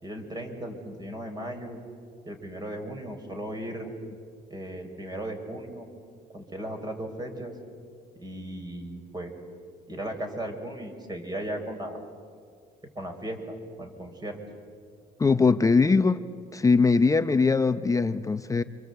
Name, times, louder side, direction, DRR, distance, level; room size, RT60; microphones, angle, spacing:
voice 1, 0.0-1.8 2.2-3.9 4.5-5.9 6.3-7.5 8.2-9.3 9.9-12.0 12.9-14.4, right 1 dB, 25° right, 4 dB, 4.7 m, -36 dB
voice 2, 15.2-16.2 16.5-18.6, left 4 dB, 20° left, 10 dB, 0.7 m, -21 dB
29.5 x 25.0 x 8.1 m, 2.1 s
cardioid pair, 110°, 17 cm